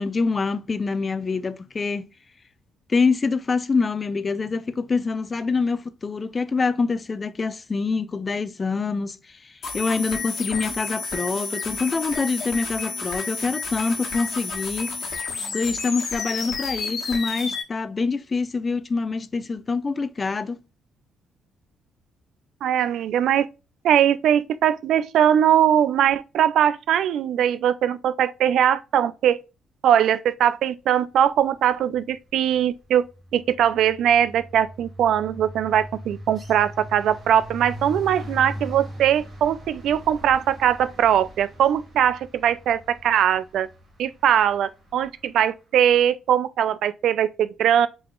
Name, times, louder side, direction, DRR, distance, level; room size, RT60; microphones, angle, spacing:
voice 1, 0.0-2.1 2.9-15.0 15.5-20.6, left 4 dB, 30° left, 0.4 m, -25 dB
sound 1, 9.6-17.6, left 4 dB, 55° left, 1.3 m, -31 dB
voice 2, 22.6-23.5 23.8-29.4 29.8-33.1 33.3-43.7 44.0-47.9, right 10 dB, 75° right, 0.4 m, -21 dB
sound 2, 31.7-32.1 32.3-45.5, equal, 40° right, 1.8 m, -40 dB
4.8 x 3.9 x 2.3 m
cardioid pair, 95°, 0 cm